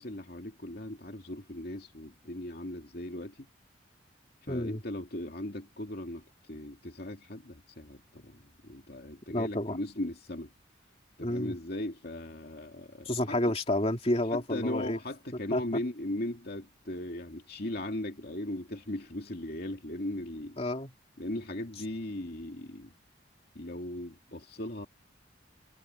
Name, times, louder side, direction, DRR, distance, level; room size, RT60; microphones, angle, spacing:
voice 1, 0.0-3.5 4.4-10.5 11.2-13.4 14.3-20.6 21.2-22.9 23.5-24.9, left 1 dB, 55° left, 2.6 m, -38 dB
voice 2, 4.5-4.8 9.3-9.8 11.2-11.5 13.0-15.0 15.5-15.6 20.6-20.9, left 1 dB, 30° left, 3.1 m, -30 dB
head